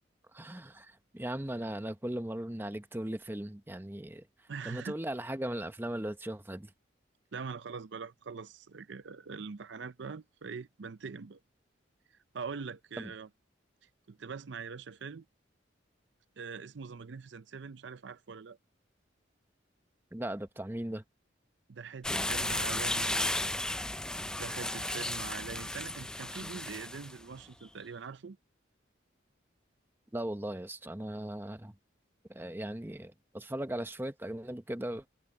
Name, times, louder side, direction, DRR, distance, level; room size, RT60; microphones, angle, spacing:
voice 1, 0.3-4.3 4.6-6.7 13.0-13.1 20.1-21.0 30.1-31.7 32.3-35.1, right 1 dB, 10° right, 0.8 m, -38 dB
voice 2, 4.5-5.0 7.3-11.4 12.3-13.3 14.1-15.2 16.4-18.6 21.7-23.4 24.3-28.4, right 5 dB, 70° right, 0.5 m, -43 dB
sound 1, 22.0-27.1, left 1 dB, 5° left, 0.3 m, -34 dB
head